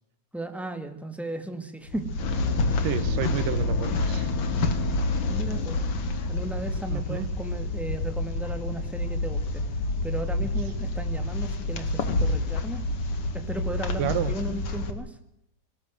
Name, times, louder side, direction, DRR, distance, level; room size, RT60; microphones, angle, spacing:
voice 1, 0.3-2.1 5.3-5.8 6.3-9.6 10.0-12.8 13.3-15.2, right 1 dB, ahead, 6 dB, 1.4 m, -35 dB
sound 1, 1.8-14.9, left 2 dB, 50° left, 2.6 m, -29 dB
sound 2, 2.2-7.1, left 4 dB, 65° left, 3.4 m, -31 dB
voice 2, 2.8-4.3 6.9-7.3 14.0-14.4, right 11 dB, 90° right, 15 dB, 2.8 m, -30 dB
19.5 x 19.5 x 7.7 m, 0.80 s
omnidirectional pair, 3.7 m